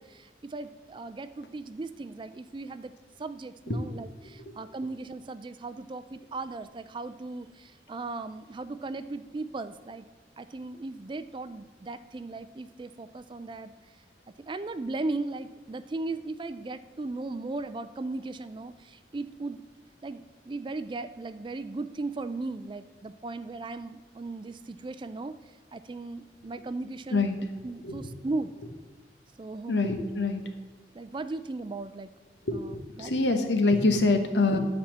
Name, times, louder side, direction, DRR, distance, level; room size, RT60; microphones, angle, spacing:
voice 1, 0.0-2.9 3.2-10.1 10.4-13.7 14.5-19.6 20.0-25.4 25.7-27.3 27.6-28.5 29.4-29.8 30.9-32.1 32.5-33.1, right 3 dB, 30° right, 13 dB, 0.3 m, -37 dB
voice 2, 29.7-30.4 32.5-32.6 33.0-34.6, left 3 dB, 85° left, 6 dB, 1.2 m, -25 dB
10.5 x 4.2 x 7.3 m, 1.4 s
head